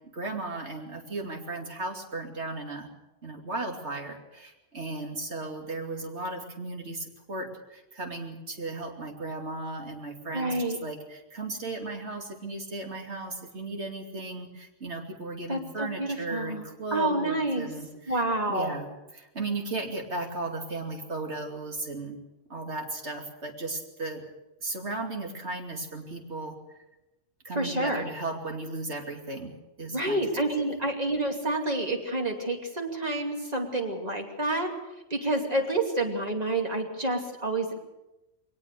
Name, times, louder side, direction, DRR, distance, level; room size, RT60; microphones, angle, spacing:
voice 1, 0.1-2.9 3.2-18.2 18.5-18.9 19.1-22.2 22.5-24.2 24.6-26.8 27.4-29.5 29.8-30.2 30.6-30.7, right 2 dB, 65° right, 2 dB, 3.0 m, -36 dB
voice 2, 10.3-10.8 15.5-16.6 16.9-17.7 18.1-18.7 27.5-28.0 29.9-34.7 35.1-37.7, right 2 dB, 35° right, 2 dB, 2.8 m, -28 dB
21.5 x 19.0 x 6.7 m, 0.98 s
omnidirectional pair, 1.2 m